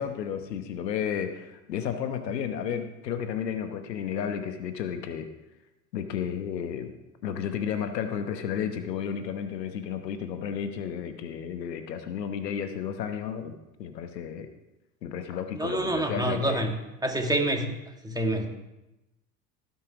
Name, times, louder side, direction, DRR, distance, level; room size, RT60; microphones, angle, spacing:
voice 1, 0.0-5.3 5.9-6.9 7.2-14.5 15.0-16.6, left 8 dB, 80° left, 8 dB, 1.1 m, -32 dB
voice 2, 15.5-16.7 17.0-17.7 18.0-18.5, right 1 dB, 10° right, 3 dB, 2.0 m, -27 dB
17.5 x 5.9 x 4.8 m, 0.97 s
hypercardioid pair, 70°, 49 cm